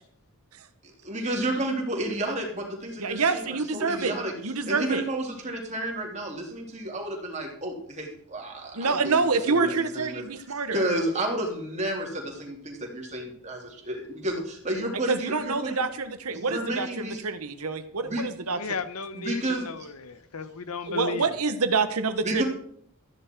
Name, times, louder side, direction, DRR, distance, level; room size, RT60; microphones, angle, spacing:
voice 1, 1.0-4.3 4.7-9.2 9.5-10.2 10.7-15.8 16.3-17.2 18.0-18.2 19.1-19.7 22.2-22.4, right 1 dB, 30° right, 0 dB, 3.2 m, -31 dB
voice 2, 3.0-4.1 4.4-5.0 8.7-10.8 15.1-18.6 20.9-22.4, right 4 dB, 90° right, 10 dB, 1.2 m, -27 dB
voice 3, 18.5-21.3, left 5 dB, 90° left, 12 dB, 1.1 m, -35 dB
14.0 x 10.5 x 4.6 m, 0.63 s
head